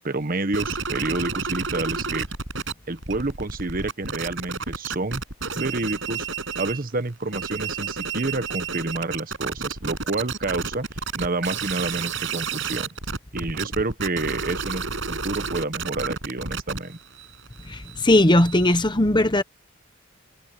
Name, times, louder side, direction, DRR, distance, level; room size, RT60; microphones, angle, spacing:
voice 1, 0.0-2.3 2.9-5.2 5.5-6.3 6.6-10.8 11.2-12.9 13.3-17.0, right 2 dB, 45° right, 1.2 m, -29 dB
sound 1, 0.5-2.7 3.0-6.8 7.2-18.8, right 5 dB, 65° right, 7.2 m, -31 dB
voice 2, 17.7-19.4, left 1 dB, 20° left, 1.2 m, -18 dB
head